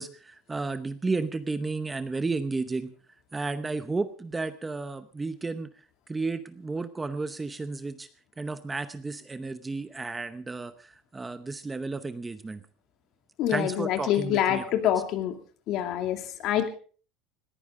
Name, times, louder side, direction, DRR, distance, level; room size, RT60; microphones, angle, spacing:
voice 1, 0.0-2.9 3.3-5.7 6.1-8.1 8.4-12.6 13.5-14.7, right 3 dB, 10° right, 11 dB, 0.8 m, -32 dB
voice 2, 13.4-15.4 15.7-16.7, left 11 dB, 50° left, 7 dB, 2.4 m, -26 dB
20.5 x 15.0 x 3.7 m, 0.41 s
cardioid pair, 150°, 0 cm